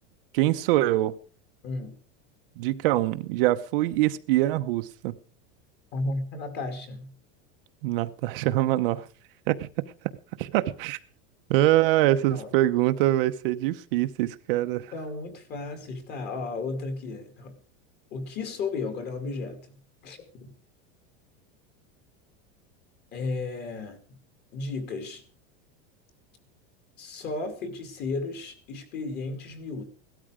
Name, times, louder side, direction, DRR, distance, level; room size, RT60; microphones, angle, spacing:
voice 1, 0.3-1.1 2.6-5.1 7.8-9.0 9.5-9.7 10.4-11.0 11.5-14.9, right 15 dB, 50° right, 0.8 m, -24 dB
voice 2, 1.6-2.0 5.9-7.1 12.1-12.5 14.9-17.5 18.1-20.5 23.1-24.0 24.5-25.2 27.0-29.8, left 3 dB, 30° left, 2.4 m, -34 dB
17.0 x 12.5 x 5.0 m
supercardioid pair, 175°, 35 cm